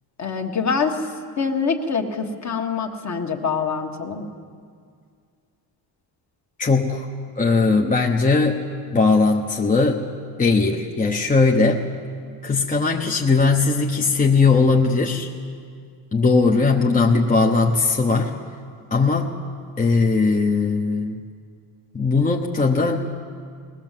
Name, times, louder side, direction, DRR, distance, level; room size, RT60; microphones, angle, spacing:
voice 1, 0.2-1.0 1.4-4.3, left 5 dB, 35° left, 3 dB, 1.7 m, -25 dB
voice 2, 6.6-7.1 7.4-8.6 8.9-10.1 10.4-11.9 12.4-15.3 16.1-18.4 18.9-19.3 19.8-21.2 21.9-23.0, left 4 dB, 15° left, 0 dB, 0.9 m, -19 dB
20.5 x 18.5 x 7.5 m, 2.2 s
cardioid pair, 135°, 46 cm